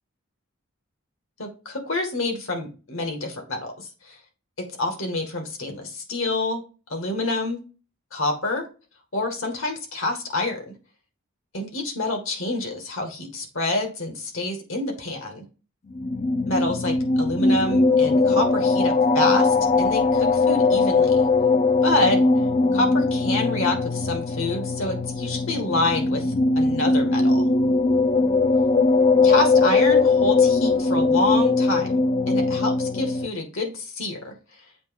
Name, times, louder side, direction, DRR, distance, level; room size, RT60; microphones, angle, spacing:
voice 1, 1.4-4.2 4.6-6.6 6.9-7.6 8.1-8.7 9.1-10.7 11.5-15.4 16.5-21.2 21.8-22.2 22.7-27.5 29.2-34.3, left 2 dB, 65° left, 4 dB, 2.0 m, -27 dB
sound 1, 15.9-33.3, left 3 dB, 35° left, 0.4 m, -20 dB
7.5 x 3.0 x 5.3 m, 0.33 s
head